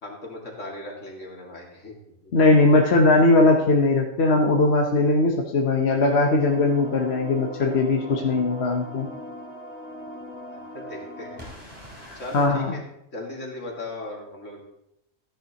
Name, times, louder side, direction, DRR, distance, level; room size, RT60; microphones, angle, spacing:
voice 1, 0.0-2.0 2.2-2.3 10.5-11.4 12.1-12.8 13.1-14.6, left 2 dB, 75° left, -1 dB, 2.6 m, -37 dB
voice 2, 2.3-9.1 12.3-12.8, left 2 dB, 60° left, 1 dB, 1.2 m, -19 dB
sound 1, 6.1-12.5, equal, 25° right, 3.2 m, -40 dB
14.0 x 10.5 x 2.9 m, 0.80 s
omnidirectional pair, 1.3 m